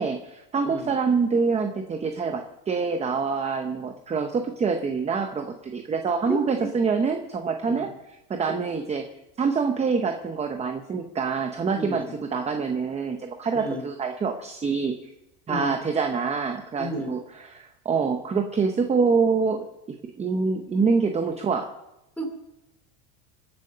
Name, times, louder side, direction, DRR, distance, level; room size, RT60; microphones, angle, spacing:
voice 1, 0.0-9.1 9.4-12.0 12.3-14.9 15.5-17.2 17.6-19.6 19.9-21.7, right 5 dB, 15° right, 6 dB, 0.7 m, -26 dB
voice 2, 6.3-6.7 7.7-7.9 8.5-8.6 11.8-12.1 13.5-13.8 15.5-15.8 16.8-17.1 22.2-22.3, equal, 5° left, 3 dB, 2.8 m, -32 dB
24.0 x 8.6 x 6.7 m, 0.93 s
supercardioid pair, 150°, 48 cm